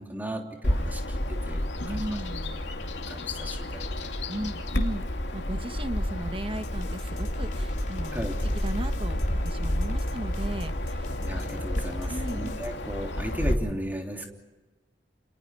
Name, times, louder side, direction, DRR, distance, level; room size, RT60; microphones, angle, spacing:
voice 1, 0.0-2.2 3.0-4.1 8.1-8.3 11.2-14.3, right 1 dB, 10° right, 2 dB, 3.3 m, -36 dB
Bird vocalization bird call bird song, 0.6-13.5, left 1 dB, 85° left, 2.5 m, -30 dB
voice 2, 1.8-2.6 4.3-5.0 5.3-8.3 8.6-9.2 9.4-11.1 12.0-12.4, right 1 dB, 30° right, 9 dB, 1.1 m, -36 dB
sound 1, 6.5-12.7, left 1 dB, 45° left, 3.0 m, -41 dB
29.5 x 27.5 x 4.8 m, 1.2 s
head